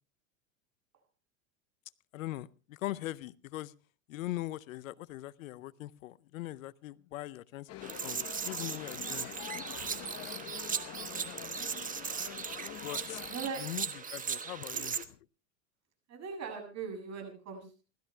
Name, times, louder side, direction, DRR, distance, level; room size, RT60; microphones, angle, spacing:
voice 1, 2.1-3.7 4.1-9.3 12.8-15.1, left 16 dB, 80° left, 0.7 m, -41 dB
sound 1, 7.7-13.5, left 12 dB, 40° left, 1.0 m, -45 dB
sound 2, 7.8-15.0, right 6 dB, 20° right, 1.3 m, -38 dB
voice 2, 13.3-13.6 14.7-14.9 16.1-17.8, right 5 dB, 40° right, 7.6 m, -40 dB
28.5 x 13.5 x 2.2 m
hypercardioid pair, 95°, 40 cm